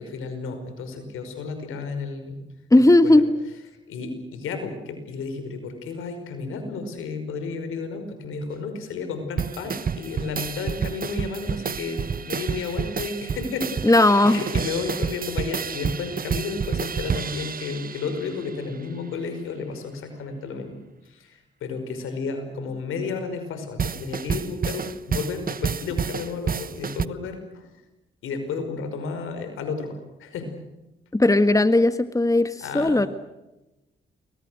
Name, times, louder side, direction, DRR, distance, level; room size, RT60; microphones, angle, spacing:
voice 1, 0.0-2.4 2.8-3.2 3.9-13.7 14.0-20.8 21.1-27.7 28.2-30.6 32.6-33.1, left 4 dB, 85° left, 8 dB, 5.5 m, -32 dB
voice 2, 2.7-3.3 13.8-14.4 31.1-33.1, left 2 dB, 15° left, 11 dB, 1.7 m, -17 dB
sound 1, 9.4-18.5 23.8-27.1, right 6 dB, 45° right, 0.9 m, -29 dB
28.5 x 23.0 x 6.5 m, 0.98 s
supercardioid pair, 45°, 21 cm